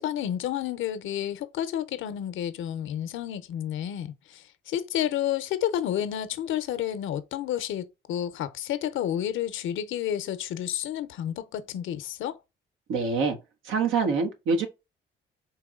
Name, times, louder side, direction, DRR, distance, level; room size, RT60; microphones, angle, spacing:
voice 1, 0.0-12.4, left 11 dB, 80° left, 0.7 m, -30 dB
voice 2, 12.9-13.4 13.6-14.7, right 4 dB, 90° right, 1.3 m, -25 dB
4.6 x 3.1 x 3.6 m
cardioid pair, 90°, 20 cm